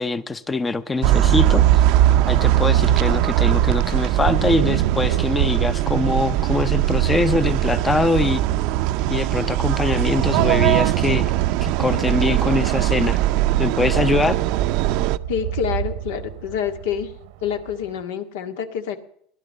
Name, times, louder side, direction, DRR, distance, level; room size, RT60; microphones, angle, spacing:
voice 1, 0.0-1.8 2.3-8.4 9.1-11.3 11.6-13.2 13.6-14.4, left 3 dB, 15° left, 0.6 m, -23 dB
sound 1, 1.0-15.2, right 13 dB, 60° right, 0.6 m, -20 dB
sound 2, 3.2-18.0, right 11 dB, 80° right, 1.0 m, -30 dB
voice 2, 15.3-17.1 17.4-19.0, left 8 dB, 85° left, 2.0 m, -27 dB
18.5 x 11.5 x 6.6 m
supercardioid pair, 140°, 0 cm